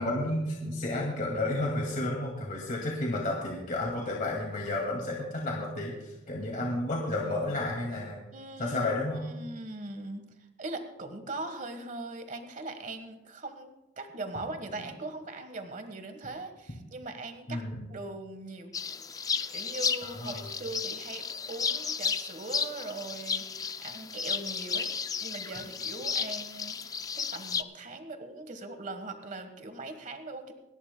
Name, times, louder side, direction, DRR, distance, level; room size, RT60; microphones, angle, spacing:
voice 1, 0.0-8.2 8.6-9.2 17.5-17.9 20.0-20.4, left 2 dB, 45° left, -2 dB, 2.2 m, -32 dB
voice 2, 8.3-13.7 14.0-17.6 17.9-18.7 19.1-24.9 25.2-30.5, right 2 dB, 45° right, 7 dB, 1.3 m, -41 dB
sound 1, 18.7-27.6, left 6 dB, 20° left, 0.3 m, -33 dB
29.0 x 11.0 x 2.2 m, 0.99 s
head